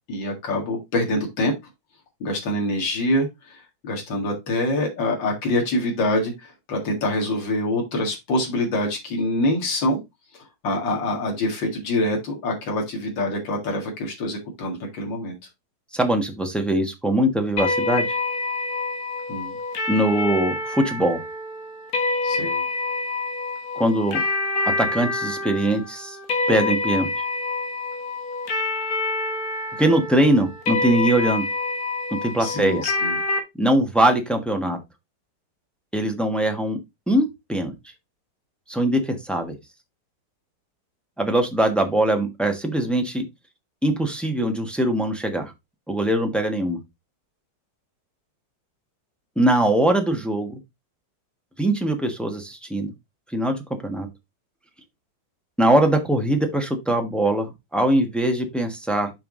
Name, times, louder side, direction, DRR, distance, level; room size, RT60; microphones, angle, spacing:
voice 1, 0.1-1.5 2.2-10.0 10.6-15.3 19.3-19.5 22.2-22.6 32.4-33.2, left 1 dB, 80° left, 0 dB, 2.6 m, -25 dB
voice 2, 15.9-18.2 19.9-21.2 23.7-24.2 24.8-26.2 26.5-27.1 29.8-31.4 32.2-32.8 33.6-34.8 35.9-36.8 37.1-37.7 38.7-39.6 41.2-43.2 43.8-45.5 45.9-46.8 49.4-50.6 51.6-52.9 53.3-54.1 55.6-59.1, right 1 dB, ahead, 4 dB, 1.1 m, -22 dB
sound 1, 17.6-33.4, left 3 dB, 55° left, 1.8 m, -27 dB
5.9 x 5.5 x 3.8 m, 0.21 s
omnidirectional pair, 2.0 m